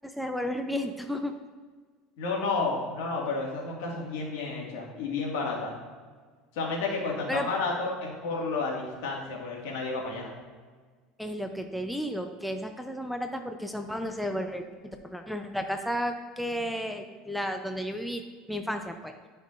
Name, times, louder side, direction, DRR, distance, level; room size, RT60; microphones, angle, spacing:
voice 1, 0.0-1.3 7.3-7.5 11.2-14.7 15.0-18.2 18.5-19.1, equal, ahead, 5 dB, 0.5 m, -33 dB
voice 2, 2.2-5.7 6.5-10.3, left 3 dB, 80° left, -2 dB, 1.8 m, -31 dB
11.0 x 5.5 x 2.5 m, 1.5 s
supercardioid pair, 130°, 0 cm